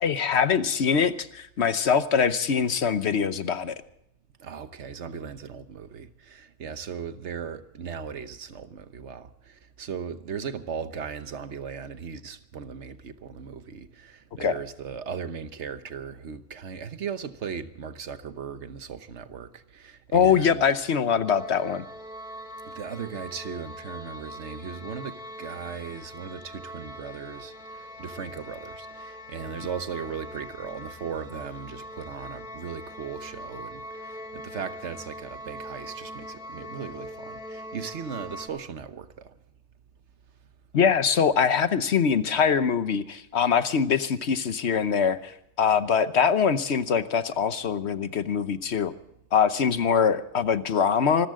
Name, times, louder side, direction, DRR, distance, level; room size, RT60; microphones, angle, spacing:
voice 1, 0.0-3.7 14.4-14.6 20.1-21.8 40.7-48.9 49.3-51.3, left 7 dB, 65° left, 1.2 m, -23 dB
voice 2, 4.4-20.7 22.6-39.3, right 6 dB, 70° right, 1.3 m, -37 dB
sound 1, 21.2-38.5, equal, 5° right, 2.3 m, -42 dB
26.0 x 14.0 x 3.7 m
omnidirectional pair, 1.3 m